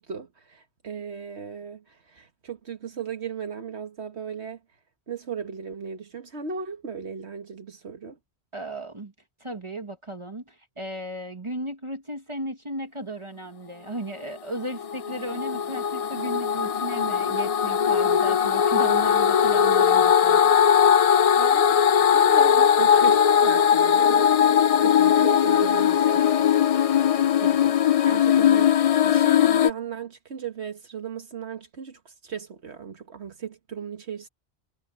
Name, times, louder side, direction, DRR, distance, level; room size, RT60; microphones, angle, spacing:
voice 1, 0.0-4.6 5.1-8.2 21.4-21.8 22.1-26.5 27.4-34.3, right 6 dB, 80° right, 1.8 m, -37 dB
voice 2, 8.5-9.1 9.4-20.4, right 1 dB, 30° right, 1.4 m, -35 dB
sound 1, 14.6-29.7, left 8 dB, 60° left, 0.3 m, -19 dB
omnidirectional pair, 1.1 m